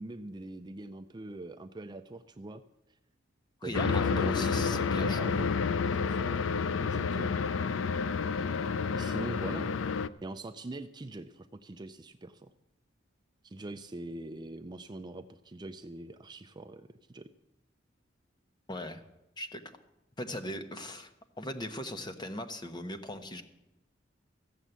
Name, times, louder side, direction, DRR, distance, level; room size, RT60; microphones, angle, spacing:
voice 1, 0.0-2.6 3.6-5.5 5.8-6.5 6.8-7.4 8.6-9.8 10.2-12.5 13.4-17.3, right 2 dB, 25° right, 9 dB, 0.5 m, -42 dB
voice 2, 3.6-5.3 18.7-19.0 19.4-19.6 20.2-21.1 21.4-23.4, left 1 dB, 25° left, 8 dB, 1.0 m, -39 dB
sound 1, 3.7-10.1, left 5 dB, 85° left, 0.5 m, -30 dB
14.0 x 7.3 x 8.1 m, 0.90 s
head